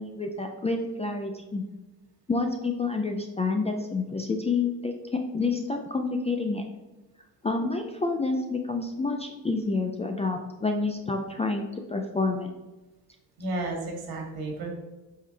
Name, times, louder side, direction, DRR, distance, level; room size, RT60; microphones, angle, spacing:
voice 1, 0.0-1.6 2.3-5.0 5.3-6.7 7.4-12.5, left 3 dB, 15° left, 4 dB, 0.4 m, -28 dB
voice 2, 13.4-14.7, right 2 dB, 60° right, 0 dB, 2.4 m, -32 dB
8.2 x 5.7 x 3.3 m, 1.1 s
cardioid pair, 150°, 41 cm